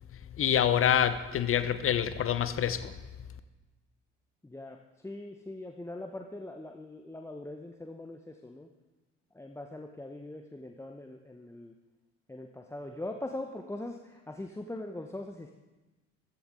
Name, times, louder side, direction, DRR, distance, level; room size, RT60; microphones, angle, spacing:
voice 1, 0.1-2.9, left 9 dB, 35° left, 12 dB, 1.0 m, -27 dB
voice 2, 4.4-8.7 9.3-11.7 12.3-15.5, left 1 dB, 10° left, 4 dB, 1.0 m, -41 dB
15.5 x 14.5 x 3.8 m, 1.1 s
figure-of-eight pair, 55°, 36 cm